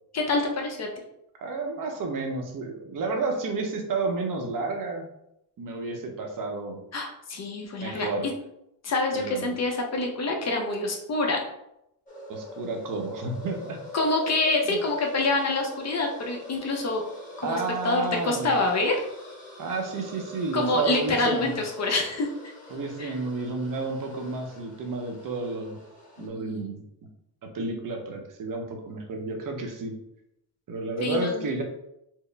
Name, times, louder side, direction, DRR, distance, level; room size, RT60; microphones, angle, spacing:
voice 1, 0.1-0.9 6.9-8.3 8.8-11.4 13.9-17.0 17.4-17.6 17.8-19.0 20.5-22.3 23.0-23.2 26.2-26.7 31.0-31.5, left 2 dB, 35° left, 1 dB, 0.7 m, -26 dB
voice 2, 1.4-5.0 5.6-6.8 7.8-8.3 9.1-9.6 12.3-13.8 14.6-14.8 17.4-18.5 19.6-21.6 22.7-25.8 26.2-26.8 27.4-29.9 30.7-31.6, right 3 dB, 45° right, 3 dB, 0.7 m, -31 dB
sound 1, 12.1-26.3, left 1 dB, 15° left, 1.2 m, -44 dB
4.6 x 2.1 x 3.3 m, 0.81 s
cardioid pair, 120°, 46 cm